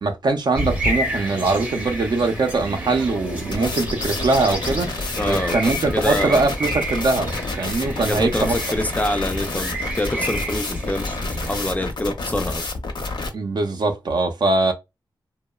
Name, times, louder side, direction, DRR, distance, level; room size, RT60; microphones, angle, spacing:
voice 1, 0.0-4.9 5.3-7.3 7.6-8.6 13.3-14.7, right 3 dB, 60° right, 0.5 m, -22 dB
sound 1, 0.5-11.7, right 1 dB, 15° right, 0.7 m, -30 dB
sound 2, 2.9-7.8, left 3 dB, 90° left, 0.8 m, -44 dB
sound 3, 3.5-13.3, left 3 dB, 60° left, 0.6 m, -29 dB
voice 2, 5.2-6.5 8.1-12.7, left 1 dB, 20° left, 0.3 m, -26 dB
2.8 x 2.0 x 2.2 m
wide cardioid pair, 100°, 8 cm